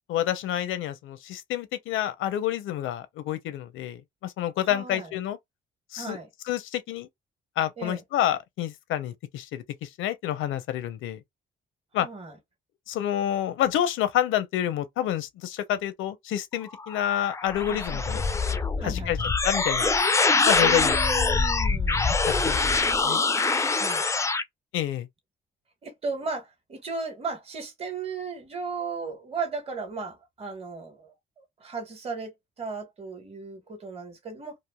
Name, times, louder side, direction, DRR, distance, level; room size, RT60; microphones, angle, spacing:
voice 1, 0.1-5.4 5.9-6.2 6.5-7.1 7.6-11.2 11.9-12.1 12.9-18.2 18.8-19.2 19.4-19.9 20.4-21.0 22.2-23.2 24.7-25.1, left 11 dB, 85° left, 0.7 m, -28 dB
voice 2, 4.7-5.1 6.0-6.3 7.8-8.0 12.0-12.3 17.7-18.2 18.5-19.3 20.6-22.2 23.8-24.0 25.8-34.6, right 4 dB, 30° right, 1.1 m, -36 dB
sound 1, 16.7-24.4, left 4 dB, 15° left, 0.4 m, -24 dB
3.2 x 2.4 x 2.2 m
cardioid pair, 90°, 20 cm